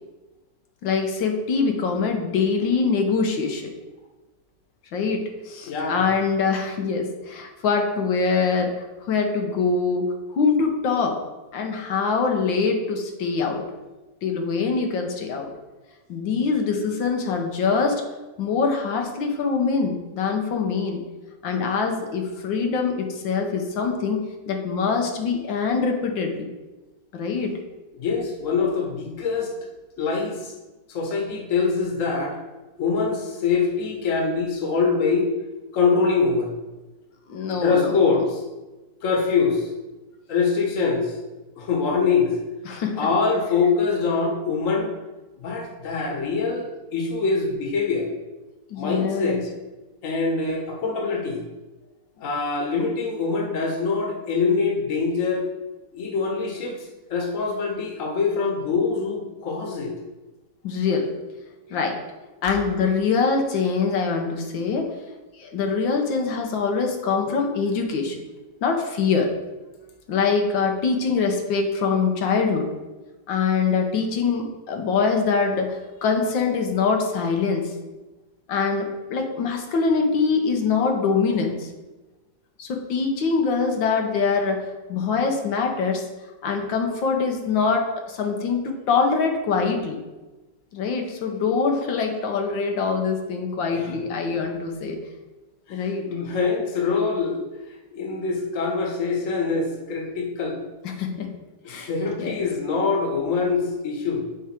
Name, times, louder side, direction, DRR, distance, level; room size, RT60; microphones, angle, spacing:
voice 1, 0.8-3.7 4.9-11.2 11.5-13.6 14.2-15.5 16.1-18.0 18.4-21.0 21.4-26.5 27.1-27.6 37.3-38.0 42.6-43.0 48.7-49.4 60.6-61.1 61.7-62.0 62.4-64.9 65.4-68.1 68.6-69.3 70.1-72.7 73.3-77.7 78.5-81.7 82.6-84.6 84.9-86.0 86.4-90.0 90.7-95.0 95.7-96.1 100.8-101.3 101.7-101.9 102.2-102.5, left 5 dB, 85° left, 3 dB, 1.6 m, -24 dB
voice 2, 5.7-6.1 28.0-29.5 30.0-30.5 30.9-32.4 32.8-35.3 35.7-36.5 37.6-38.4 39.0-39.7 40.3-41.1 41.6-42.3 43.0-44.9 45.4-46.7 46.9-48.1 48.8-49.4 50.0-51.4 52.2-55.4 55.9-56.8 57.1-59.9 93.7-93.8 95.7-97.4 97.9-100.6 101.7-104.2, left 4 dB, 50° left, 1 dB, 1.4 m, -24 dB
7.2 x 4.8 x 4.4 m, 1.1 s
omnidirectional pair, 2.0 m